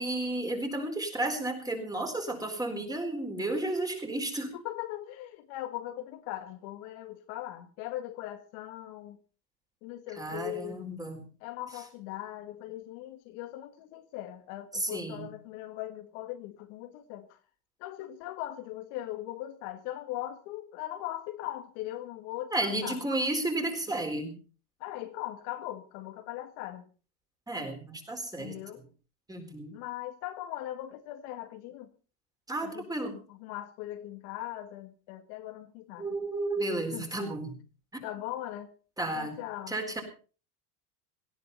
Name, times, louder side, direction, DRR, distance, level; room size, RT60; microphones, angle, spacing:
voice 1, 0.0-4.5 10.1-11.3 14.7-15.3 22.5-24.3 27.5-28.6 29.3-29.8 32.5-33.2 36.0-37.5 37.9-38.0 39.0-39.3 39.7-40.0, right 2 dB, 10° right, 4.3 m, -32 dB
voice 2, 4.5-9.2 9.8-10.9 11.4-17.4 17.8-23.0 24.8-26.9 28.4-28.8 29.7-31.9 32.6-36.1 36.9-37.1 38.0-38.7 39.1-39.8, left 14 dB, 65° left, 2.0 m, -40 dB
18.0 x 16.0 x 4.1 m
supercardioid pair, 135°, 47 cm